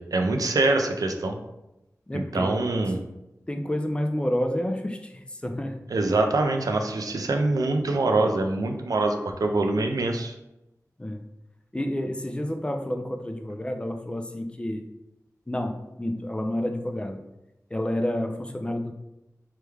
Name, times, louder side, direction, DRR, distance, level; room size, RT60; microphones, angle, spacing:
voice 1, 0.0-1.3 2.1-3.0 5.9-10.3, right 2 dB, 90° right, 4 dB, 0.3 m, -24 dB
voice 2, 2.1-2.5 3.5-5.8 11.0-11.2 11.7-14.8 15.5-17.2 17.7-18.9, left 1 dB, 15° left, 4 dB, 0.3 m, -29 dB
3.1 x 2.2 x 3.3 m, 0.94 s
wide cardioid pair, 55°, 6 cm